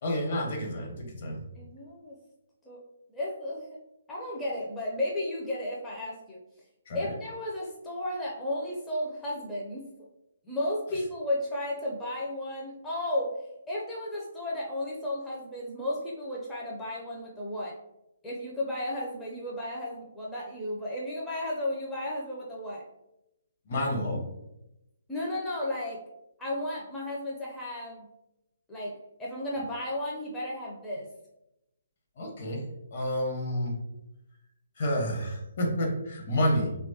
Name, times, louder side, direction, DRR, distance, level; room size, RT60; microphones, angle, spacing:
voice 1, 0.0-1.4 6.9-7.1 23.7-24.3 32.2-32.6 32.9-33.8 34.8-36.8, equal, 50° left, 1 dB, 0.8 m, -29 dB
voice 2, 1.6-2.2 2.7-2.8 3.1-3.7 4.1-6.4 6.9-9.9 10.4-17.8 18.2-22.8 25.1-26.0 26.4-28.1 28.7-31.1 36.3-36.4, left 1 dB, 10° left, -6 dB, 0.4 m, -34 dB
3.0 x 2.2 x 2.6 m, 0.89 s
figure-of-eight pair, 135°, 0 cm